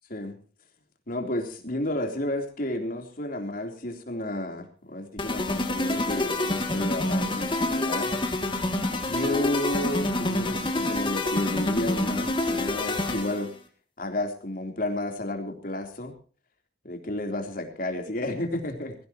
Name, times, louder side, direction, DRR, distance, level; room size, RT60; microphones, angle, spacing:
voice 1, 1.1-8.1 8.9-13.5 14.0-16.1 16.8-19.0, left 1 dB, 50° left, 4 dB, 3.6 m, -31 dB
sound 1, 5.2-13.5, left 2 dB, 30° left, 2.6 m, -27 dB
21.5 x 16.0 x 3.0 m, 0.38 s
head